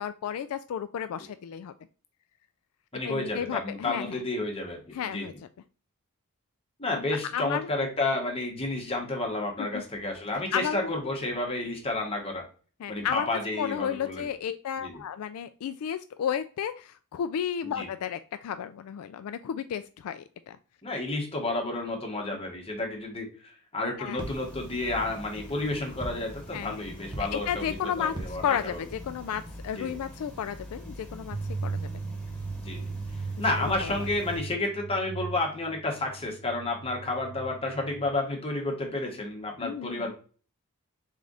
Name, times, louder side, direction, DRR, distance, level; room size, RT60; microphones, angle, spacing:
voice 1, 0.0-1.7 3.0-4.2 4.9-5.3 7.1-7.7 9.6-9.8 10.5-10.9 12.8-20.6 24.0-24.2 26.5-26.7 27.3-31.4 31.6-31.8 33.4-34.1 39.6-40.1, left 8 dB, 70° left, 11 dB, 0.3 m, -33 dB
voice 2, 2.9-5.3 6.8-12.4 12.9-14.3 14.8-15.0 17.8-17.9 20.8-23.3 23.7-28.8 29.8-30.0 32.6-32.9 33.4-40.1, left 2 dB, 25° left, 1 dB, 1.2 m, -31 dB
sound 1, 24.2-34.4, equal, 5° left, 1.8 m, -44 dB
sound 2, 24.2-24.7 26.0-26.5 27.1-27.7 28.1-28.8, right 1 dB, 20° right, 1.0 m, -40 dB
sound 3, 31.3-38.1, right 4 dB, 70° right, 0.6 m, -37 dB
3.6 x 3.4 x 3.8 m, 0.38 s
head